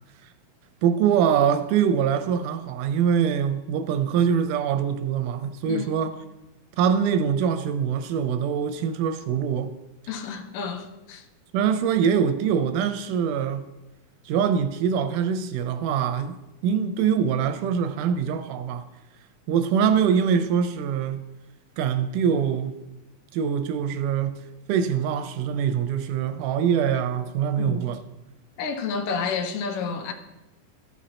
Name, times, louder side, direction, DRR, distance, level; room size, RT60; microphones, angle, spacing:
voice 1, 0.8-6.2 6.8-9.7 11.5-13.7 14.3-16.3 16.6-18.9 19.5-21.2 21.8-22.8 23.3-24.4 24.7-28.0, right 7 dB, 80° right, 2.0 m, -23 dB
voice 2, 5.7-6.1 10.1-11.3 27.6-27.8 28.6-30.1, left 5 dB, 80° left, 2.3 m, -30 dB
14.0 x 5.2 x 4.2 m
omnidirectional pair, 3.9 m